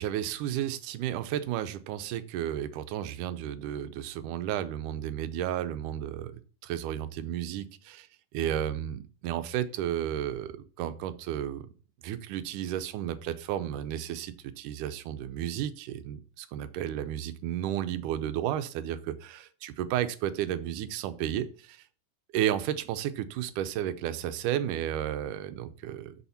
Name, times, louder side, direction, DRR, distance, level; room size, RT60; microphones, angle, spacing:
voice 1, 0.0-8.1 8.3-11.7 12.0-21.8 22.3-26.3, right 11 dB, 85° right, 11 dB, 2.3 m, -33 dB
7.1 x 6.5 x 5.6 m, 0.39 s
omnidirectional pair, 3.6 m